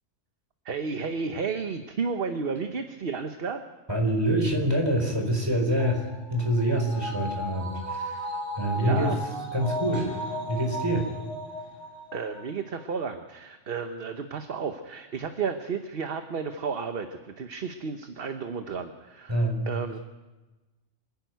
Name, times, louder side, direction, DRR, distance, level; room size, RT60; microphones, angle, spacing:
voice 1, 0.6-3.6 8.8-9.2 12.1-20.0, right 5 dB, 55° right, 7 dB, 1.2 m, -32 dB
voice 2, 3.9-9.1 9.5-11.1 19.3-19.6, right 1 dB, 20° right, 2 dB, 4.2 m, -26 dB
sound 1, 5.8-12.4 12.8-12.9, equal, 70° left, 4.0 m, -36 dB
sound 2, 9.9-12.3, left 2 dB, 25° left, 5.3 m, -47 dB
26.0 x 11.0 x 9.3 m, 1.2 s
omnidirectional pair, 1.2 m